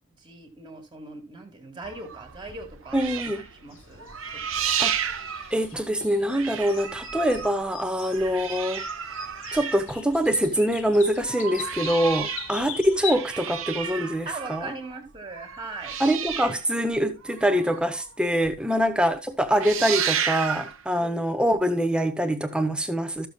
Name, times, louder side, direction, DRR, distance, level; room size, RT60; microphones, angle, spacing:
voice 1, 0.2-3.2 3.5-4.8 14.3-16.0 18.6-18.9 21.0-21.2, right 3 dB, 20° right, 1.8 m, -40 dB
sound 1, 1.8-6.1 6.3-10.5 11.0-18.1 18.4-18.6 18.9-19.2 19.4-20.8 21.6-21.7, right 7 dB, 65° right, 0.9 m, -32 dB
voice 2, 2.9-3.5 4.8-5.0 5.5-8.8 9.5-14.7 16.0-23.3, equal, 5° right, 0.8 m, -24 dB
sound 2, 3.7-13.2, left 7 dB, 65° left, 1.6 m, -41 dB
14.5 x 6.8 x 2.3 m
head